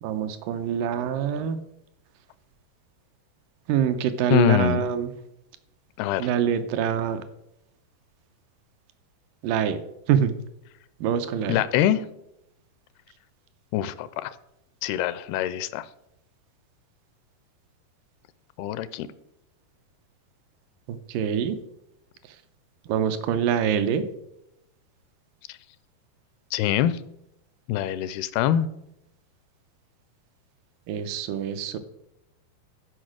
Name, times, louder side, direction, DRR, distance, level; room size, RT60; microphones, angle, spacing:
voice 1, 0.0-1.6 3.7-5.1 6.2-7.2 9.4-9.8 10.1-10.3 11.0-11.6 20.9-21.6 22.2-22.4 22.9-24.1 30.9-31.8, right 8 dB, 80° right, 10 dB, 2.0 m, -25 dB
voice 2, 4.3-4.8 6.0-6.3 11.5-12.0 13.7-14.3 14.8-15.9 18.6-19.1 26.5-27.0 27.7-28.7, left 11 dB, 85° left, 15 dB, 2.5 m, -24 dB
13.0 x 5.3 x 6.2 m, 0.83 s
omnidirectional pair, 4.6 m